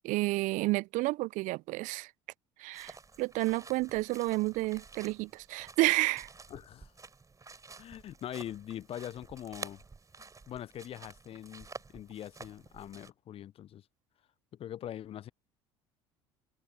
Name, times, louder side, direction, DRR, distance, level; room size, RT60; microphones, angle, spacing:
voice 1, 0.0-2.1 2.6-6.3, right 21 dB, 60° right, 0.4 m, -30 dB
sound 1, 2.7-13.1, right 4 dB, 25° right, 4.3 m, -50 dB
voice 2, 6.5-6.9 7.8-9.8 10.2-13.8 14.6-15.3, left 11 dB, 40° left, 0.4 m, -43 dB
hypercardioid pair, 65°, 15 cm